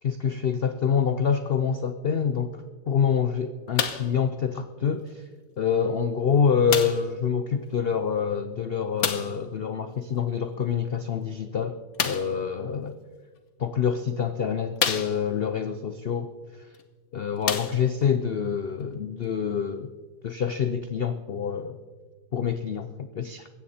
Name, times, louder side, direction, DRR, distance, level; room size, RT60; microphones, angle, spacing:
voice 1, 0.0-5.2 5.6-13.0 13.6-16.3 17.1-19.9 20.2-21.8 22.3-23.5, left 7 dB, 90° left, 10 dB, 0.5 m, -26 dB
sound 1, 3.8-4.2 5.1-5.2 6.7-7.1 9.0-9.4 11.9-12.4 13.4-13.5 14.1-14.2 14.8-15.5 16.7-16.8 17.4-18.1 18.9-19.0, left 7 dB, 60° left, 1.4 m, -28 dB
16.5 x 14.0 x 4.3 m, 1.4 s
omnidirectional pair, 1.9 m